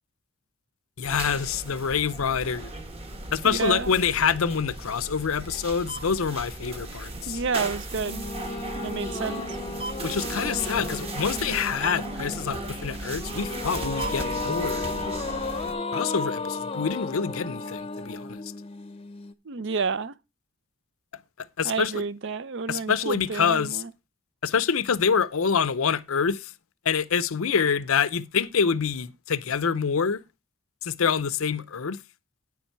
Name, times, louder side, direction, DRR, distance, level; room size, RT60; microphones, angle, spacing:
voice 1, 1.0-2.7 3.3-7.4 10.0-14.9 15.9-18.4 21.6-21.9 22.7-23.8 24.4-26.5 26.8-30.2 30.8-32.0, left 6 dB, 70° left, 0.6 m, -26 dB
sound 1, 1.0-15.7, right 2 dB, 25° right, 1.1 m, -36 dB
voice 2, 3.4-3.9 7.3-8.2 8.8-9.4 19.5-20.1 21.6-23.9, right 5 dB, 55° right, 0.6 m, -30 dB
sound 2, 7.9-19.3, left 3 dB, 25° left, 0.7 m, -34 dB
9.6 x 7.0 x 4.5 m
head